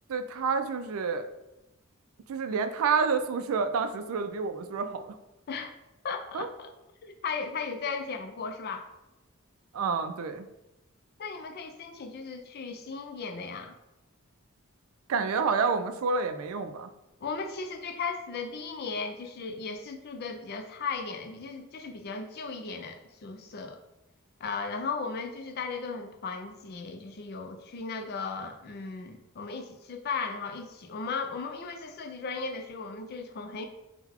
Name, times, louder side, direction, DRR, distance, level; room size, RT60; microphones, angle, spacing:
voice 1, 0.1-1.3 2.3-5.1 6.3-6.5 9.7-10.5 15.1-16.9, right 5 dB, 80° right, 9 dB, 0.4 m, -28 dB
voice 2, 6.0-6.7 7.0-8.9 11.2-13.7 17.2-23.8 24.4-33.7, left 4 dB, 50° left, 5 dB, 0.4 m, -36 dB
3.8 x 2.2 x 4.3 m, 0.95 s
head